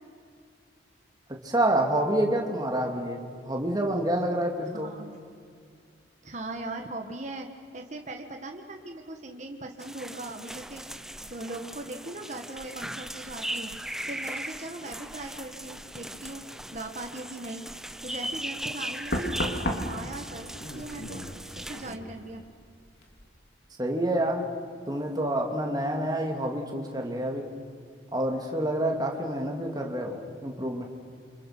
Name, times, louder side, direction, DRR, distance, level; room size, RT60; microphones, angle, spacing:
voice 1, 1.4-4.9 23.8-24.5 24.9-27.5 28.1-30.8, right 1 dB, 20° right, 1 dB, 2.6 m, -28 dB
voice 2, 4.7-5.2 6.2-7.5 7.7-13.7 14.1-16.4 16.7-17.6 18.0-21.2 21.6-22.4, right 2 dB, 40° right, 3 dB, 1.6 m, -39 dB
sound 1, 9.8-22.0, right 1 dB, ahead, 0.6 m, -39 dB
Knock, 18.1-18.3 19.1-22.6 22.9-23.2, equal, 60° left, 3.3 m, -34 dB
29.0 x 26.5 x 6.1 m, 2.3 s
head